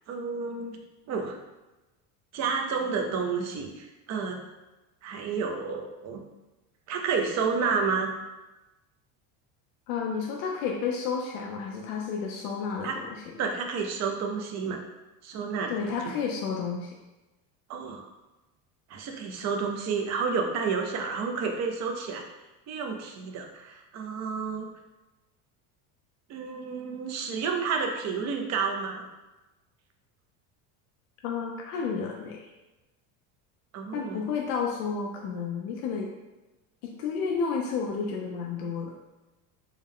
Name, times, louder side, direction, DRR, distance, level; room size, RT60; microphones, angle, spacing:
voice 1, 0.1-0.8 1.1-1.4 2.3-4.4 5.0-6.3 6.9-8.1 12.8-13.0 13.4-14.8 15.2-15.9 17.7-18.0 18.9-22.2 22.7-24.7 26.3-29.0 33.7-34.2, right 5 dB, 40° right, 3 dB, 0.5 m, -30 dB
voice 2, 9.9-13.3 15.7-16.9 31.2-32.5 33.9-36.1 36.8-38.9, left 5 dB, 90° left, 0 dB, 0.6 m, -31 dB
3.6 x 2.1 x 3.5 m, 1.1 s
cardioid pair, 130°, 42 cm